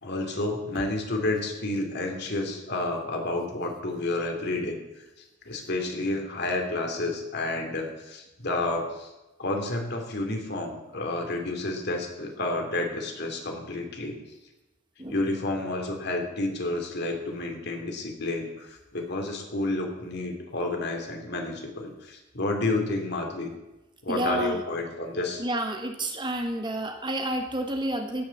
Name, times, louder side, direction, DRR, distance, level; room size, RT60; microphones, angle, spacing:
voice 1, 0.0-4.8 5.4-9.1 9.4-14.2 15.1-23.5 24.0-25.4, left 2 dB, 60° left, 2 dB, 2.8 m, -30 dB
voice 2, 24.1-24.6 25.4-28.2, right 1 dB, 25° right, 5 dB, 1.4 m, -30 dB
16.5 x 6.8 x 7.2 m, 1.0 s
head